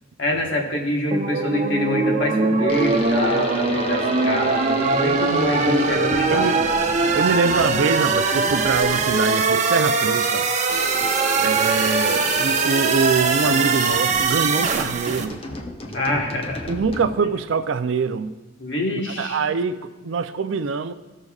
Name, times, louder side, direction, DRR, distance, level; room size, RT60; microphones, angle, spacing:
voice 1, 0.2-6.5 15.9-16.7 18.6-19.4, left 1 dB, 65° left, 0 dB, 1.4 m, -25 dB
sound 1, 1.1-15.2, right 4 dB, 40° right, 0.6 m, -21 dB
sound 2, 2.7-9.3 10.7-17.3, left 2 dB, 30° left, 0.7 m, -33 dB
voice 2, 6.3-6.8 7.1-10.5 11.4-15.4 16.7-18.3 19.2-20.9, right 5 dB, 80° right, 11 dB, 0.5 m, -24 dB
15.5 x 6.5 x 2.4 m, 1.3 s
head